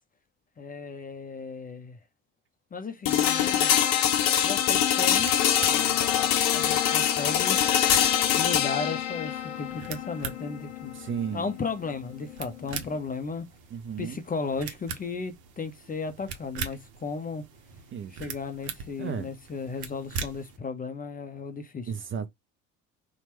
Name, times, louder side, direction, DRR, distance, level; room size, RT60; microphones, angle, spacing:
voice 1, 0.6-2.0 2.7-3.7 4.4-5.3 5.7-7.6 8.3-11.0 11.3-13.5 14.0-17.4 18.1-21.9, left 4 dB, 20° left, 0.5 m, -35 dB
sound 1, 3.1-13.0, left 10 dB, 65° left, 0.6 m, -24 dB
sound 2, 4.7-20.6, right 6 dB, 60° right, 0.8 m, -42 dB
voice 2, 10.9-11.4 13.7-14.2 17.9-18.2 19.0-19.3 21.9-22.3, right 7 dB, 30° right, 0.5 m, -33 dB
2.9 x 2.2 x 2.9 m
figure-of-eight pair, 50°, 43 cm